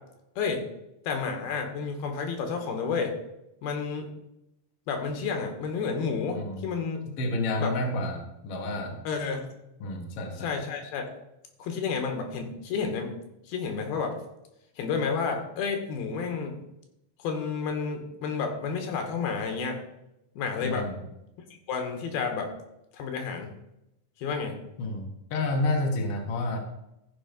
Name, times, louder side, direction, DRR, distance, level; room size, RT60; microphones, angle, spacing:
voice 1, 1.0-3.1 3.6-4.1 4.9-7.0 7.6-7.8 9.0-9.5 10.4-11.1 11.6-13.2 13.5-14.2 14.8-16.6 17.2-19.8 20.4-20.9 21.7-22.5 22.9-23.5 24.2-24.6, left 5 dB, 85° left, 4 dB, 3.3 m, -30 dB
voice 2, 6.3-6.6 7.1-9.0 9.8-10.5 20.6-21.0 24.8-26.6, left 2 dB, 50° left, 2 dB, 2.0 m, -30 dB
14.0 x 5.3 x 5.2 m, 0.86 s
omnidirectional pair, 4.3 m